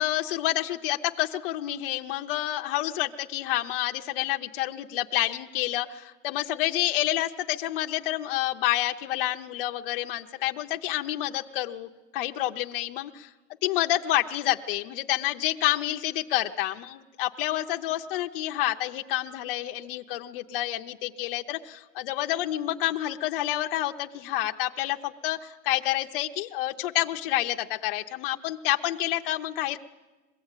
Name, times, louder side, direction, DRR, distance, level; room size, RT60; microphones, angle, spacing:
voice 1, 0.0-13.3 13.6-29.8, left 14 dB, 35° left, 4 dB, 0.6 m, -28 dB
21.5 x 16.0 x 8.9 m, 1.2 s
supercardioid pair, 165°, 46 cm